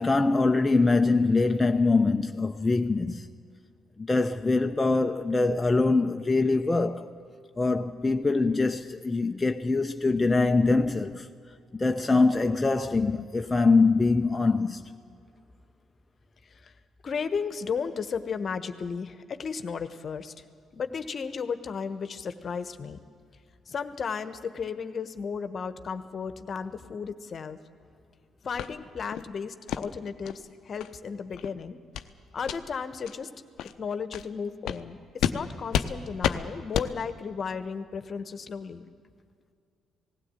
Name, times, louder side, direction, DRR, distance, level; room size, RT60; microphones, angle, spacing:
voice 1, 0.0-3.3 4.0-7.1 7.6-11.3 11.7-14.8, left 3 dB, 25° left, 0.8 m, -23 dB
voice 2, 16.4-16.7 17.0-20.4 20.7-23.0 23.7-27.6 28.4-31.8 32.3-33.3 33.8-38.8, left 6 dB, 50° left, 1.2 m, -34 dB
sound 1, 28.6-28.7 29.1-29.3 29.7-29.8 30.2-30.4 30.8-30.9 31.3-31.5 31.9-32.1 32.4-32.6 33.0-33.1 33.6-33.7 34.1-34.2 34.6-34.8 35.2-35.4 35.7-35.9 36.2-36.4 36.7-36.9, left 10 dB, 70° left, 0.8 m, -29 dB
18.5 x 16.0 x 9.1 m
hypercardioid pair, 50°, 0 cm